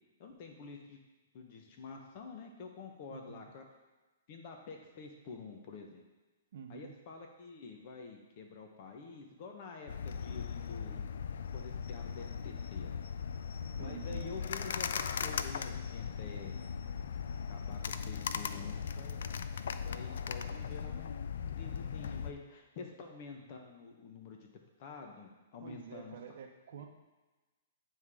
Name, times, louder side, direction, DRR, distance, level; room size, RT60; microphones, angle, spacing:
voice 1, 0.2-1.0 1.3-3.6 4.3-6.0 6.7-11.0 11.5-12.9 13.8-16.6 17.5-19.3 19.8-21.1 21.5-24.5 24.8-26.2, left 4 dB, 50° left, 3 dB, 1.1 m, -48 dB
voice 2, 3.1-3.4 6.5-6.9 13.8-14.3 25.6-26.9, right 7 dB, 65° right, 4 dB, 0.8 m, -48 dB
sound 1, 9.9-22.3, left 6 dB, 75° left, 0.3 m, -38 dB
9.0 x 3.6 x 3.7 m, 1.2 s
hypercardioid pair, 135°, 0 cm